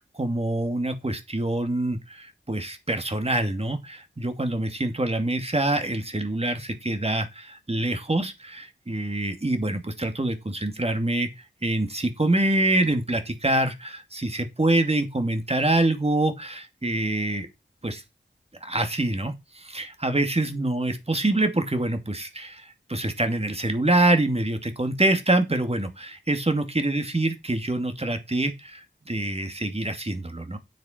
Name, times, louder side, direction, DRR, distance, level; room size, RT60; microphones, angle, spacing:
voice 1, 0.0-11.3 11.6-17.5 17.8-18.0 18.6-30.6, right 1 dB, 30° right, 2.6 m, -25 dB
9.2 x 8.0 x 4.5 m
cardioid pair, 50°, 20 cm